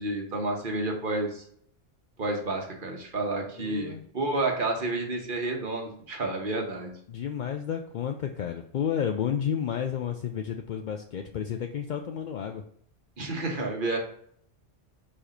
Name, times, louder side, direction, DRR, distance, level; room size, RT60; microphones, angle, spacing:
voice 1, 0.0-1.4 2.2-6.9 13.2-14.0, right 2 dB, 45° right, 2 dB, 1.4 m, -30 dB
voice 2, 3.6-4.0 7.1-12.6, left 8 dB, 60° left, 5 dB, 0.5 m, -31 dB
4.9 x 4.3 x 5.1 m, 0.63 s
omnidirectional pair, 1.2 m